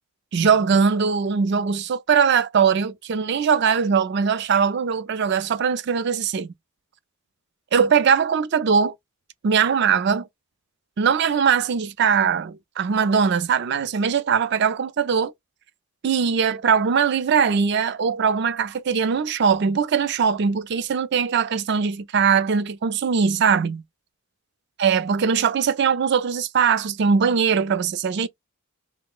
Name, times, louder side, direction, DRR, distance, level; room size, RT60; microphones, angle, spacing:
voice 1, 0.3-6.5 7.7-8.9 9.4-10.3 11.0-15.3 16.0-23.8 24.8-28.3, right 6 dB, 50° right, 0.3 m, -21 dB
3.2 x 2.0 x 3.5 m
head